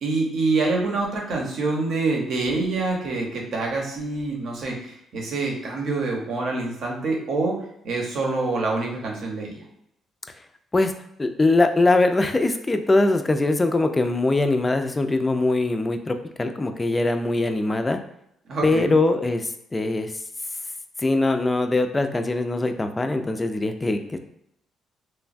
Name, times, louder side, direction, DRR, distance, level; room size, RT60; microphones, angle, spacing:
voice 1, 0.0-7.6 7.8-9.5 18.5-18.9, right 3 dB, 65° right, -1 dB, 0.8 m, -26 dB
voice 2, 11.2-18.0 18.6-20.1 21.0-24.2, left 2 dB, 20° left, 7 dB, 0.3 m, -22 dB
3.0 x 2.2 x 2.5 m, 0.75 s
cardioid pair, 90°, 0 cm